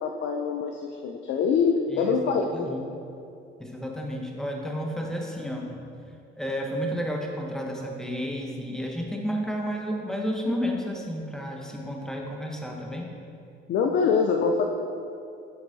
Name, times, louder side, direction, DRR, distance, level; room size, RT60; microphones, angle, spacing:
voice 1, 0.0-2.7 13.7-14.6, left 5 dB, 70° left, 2 dB, 0.5 m, -24 dB
voice 2, 1.9-2.8 3.6-5.7 6.4-13.1, equal, 5° left, 0 dB, 0.9 m, -31 dB
7.0 x 6.0 x 2.7 m, 2.6 s
cardioid pair, 90°, 20 cm